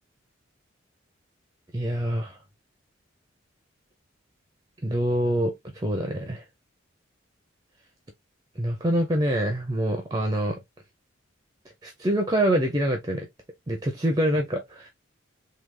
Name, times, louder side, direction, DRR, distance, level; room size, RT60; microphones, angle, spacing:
voice 1, 1.7-2.4 4.8-6.4 8.6-10.6 11.8-13.3 13.7-14.9, right 1 dB, 20° right, 0.6 m, -25 dB
3.4 x 2.3 x 3.0 m
head